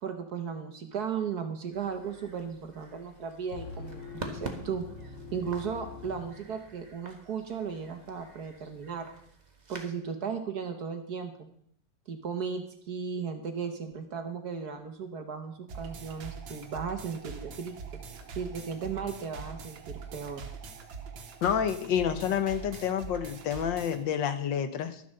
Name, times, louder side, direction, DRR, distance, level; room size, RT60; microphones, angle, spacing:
voice 1, 0.0-4.8 5.3-9.1 9.7-11.5 12.1-17.8 18.3-20.4, right 6 dB, 55° right, 6 dB, 1.5 m, -36 dB
sound 1, 1.7-9.9, right 2 dB, 25° right, 1.4 m, -47 dB
sound 2, 3.5-7.0, left 4 dB, 45° left, 1.4 m, -44 dB
sound 3, 15.7-24.0, right 5 dB, 80° right, 1.9 m, -43 dB
voice 2, 21.4-25.0, left 8 dB, 75° left, 10 dB, 1.6 m, -29 dB
12.5 x 7.7 x 6.5 m, 0.67 s
omnidirectional pair, 2.1 m